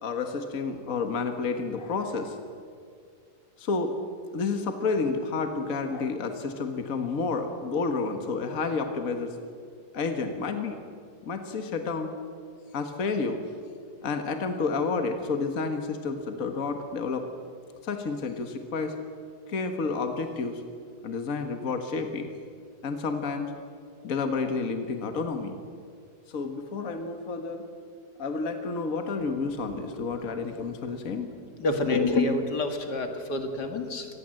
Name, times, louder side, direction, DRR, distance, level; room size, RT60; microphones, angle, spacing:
voice 1, 0.0-2.4 3.6-4.0 4.3-9.4 9.9-10.8 11.2-12.1 12.7-13.4 14.0-17.3 17.8-19.0 19.5-20.6 21.0-22.3 22.8-23.5 24.0-25.6 26.3-27.7 28.2-31.3, left 4 dB, 55° left, 6 dB, 1.9 m, -30 dB
voice 2, 31.6-34.1, left 3 dB, 80° left, 5 dB, 2.6 m, -27 dB
26.0 x 19.5 x 7.7 m, 2.3 s
omnidirectional pair, 1.8 m